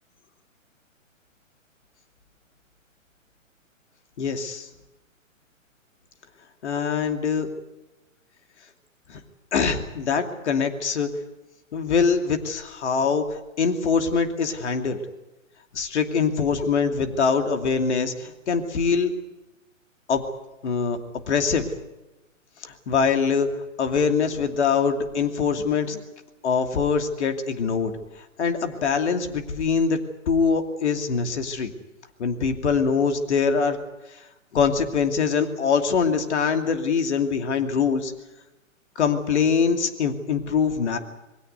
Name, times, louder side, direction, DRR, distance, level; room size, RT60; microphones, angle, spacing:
voice 1, 4.2-4.7 6.6-7.5 9.1-9.2 9.5-11.1 11.7-15.0 15.7-19.1 20.1-20.2 20.6-21.0 21.3-21.6 22.6-23.5 23.8-26.0 26.4-27.9 28.4-30.0 30.3-31.7 32.2-33.8 34.5-38.1 39.0-41.0, left 5 dB, 55° left, 6 dB, 2.8 m, -23 dB
22.5 x 16.5 x 9.5 m, 1.0 s
figure-of-eight pair, 125°, 40 cm